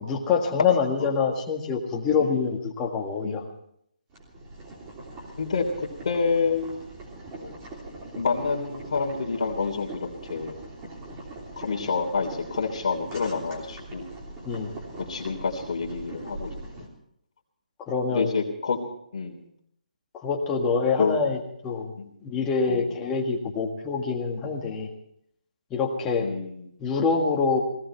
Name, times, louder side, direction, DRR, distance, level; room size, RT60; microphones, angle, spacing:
voice 1, 0.0-3.4 14.5-14.7 17.8-18.3 20.1-21.4 21.6-21.9 22.2-24.9 25.7-26.3 26.8-27.6, left 5 dB, 15° left, 0 dB, 1.7 m, -25 dB
Boiling, 4.1-16.9, right 2 dB, 20° right, 3.3 m, -41 dB
voice 2, 5.4-6.8 7.4-7.5 8.1-10.6 11.5-14.1 15.1-16.5 18.1-18.8 19.1-19.4 21.0-21.2 22.0-22.1 22.7-22.8 26.2-26.6, left 5 dB, 50° left, -1 dB, 3.2 m, -28 dB
19.0 x 17.0 x 4.5 m, 0.72 s
hypercardioid pair, 165°, 5 cm